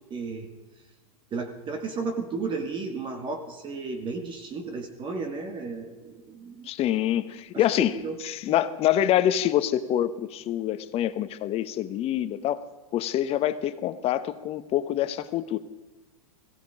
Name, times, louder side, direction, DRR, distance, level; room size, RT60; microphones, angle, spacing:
voice 1, 0.1-0.5 1.3-6.7 7.5-7.6 7.9-8.2, right 4 dB, 25° right, 6 dB, 1.9 m, -33 dB
voice 2, 6.6-7.9 8.2-12.7 12.9-15.6, left 11 dB, 30° left, 13 dB, 0.9 m, -26 dB
17.0 x 16.0 x 4.9 m, 1.2 s
hypercardioid pair, 125°, 19 cm